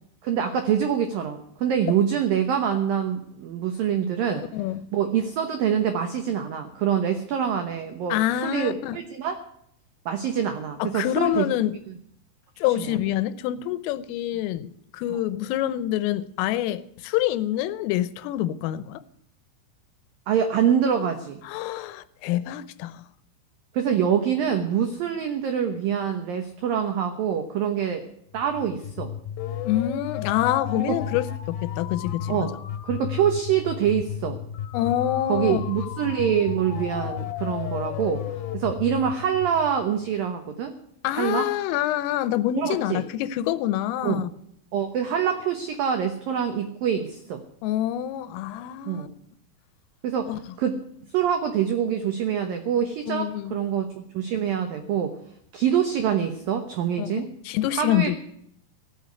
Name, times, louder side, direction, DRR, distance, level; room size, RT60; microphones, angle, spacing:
voice 1, 0.2-4.5 4.9-9.4 10.1-11.5 12.8-13.0 20.3-21.4 23.7-28.0 28.3-29.1 30.7-30.9 32.3-32.5 32.8-34.4 35.3-38.2 38.5-40.8 41.1-41.5 42.6-43.0 44.0-44.2 44.7-47.4 48.9-49.1 50.0-50.3 50.6-50.8 51.1-55.1 55.5-57.3 57.7-58.1, right 8 dB, 85° right, 2.0 m, -25 dB
voice 2, 4.3-4.9 8.1-9.0 10.8-11.8 12.6-19.0 21.5-23.1 29.7-32.5 34.7-35.6 41.0-44.3 47.6-49.1 50.3-50.4 53.1-53.6 57.0-58.2, left 13 dB, 85° left, 3.4 m, -26 dB
sound 1, 28.3-40.2, left 10 dB, 70° left, 2.9 m, -33 dB
16.5 x 8.5 x 9.4 m
omnidirectional pair, 5.8 m